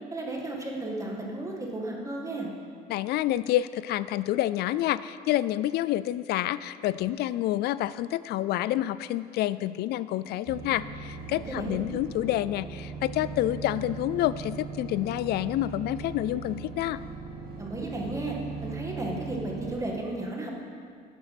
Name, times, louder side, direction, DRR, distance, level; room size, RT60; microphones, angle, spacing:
voice 1, 0.1-2.5 11.5-11.8 17.6-18.4 18.6-20.5, right 2 dB, 20° right, -1 dB, 1.9 m, -34 dB
voice 2, 2.9-17.0, left 14 dB, 70° left, 16 dB, 0.4 m, -28 dB
sound 1, 10.5-19.8, right 5 dB, 60° right, 2.1 m, -39 dB
11.0 x 8.3 x 6.0 m, 2.2 s
cardioid pair, 110°, 17 cm